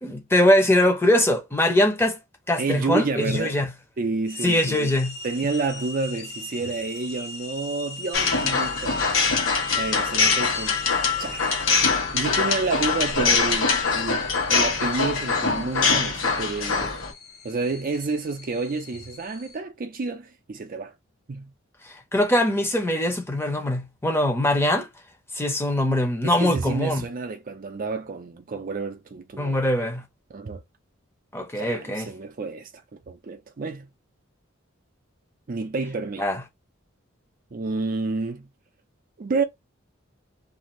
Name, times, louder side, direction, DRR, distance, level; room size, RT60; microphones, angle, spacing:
voice 1, 0.0-2.2 2.5-3.7 4.4-5.2 21.9-24.9 25.3-27.0 29.4-30.0 31.3-32.1 36.2-36.4, left 1 dB, 10° left, 0.7 m, -22 dB
voice 2, 2.6-3.6 4.0-4.9 5.2-9.0 9.8-10.8 11.2-11.5 12.1-16.9 17.4-20.9 21.3-21.5 26.3-29.6 30.3-30.6 31.5-32.7 33.1-33.9 35.5-36.3 37.5-38.5 39.2-39.4, right 3 dB, 45° right, 0.4 m, -29 dB
sound 1, 4.3-19.6, left 2 dB, 55° left, 0.8 m, -40 dB
sound 2, 8.1-17.1, left 4 dB, 85° left, 1.1 m, -23 dB
2.6 x 2.4 x 3.0 m
head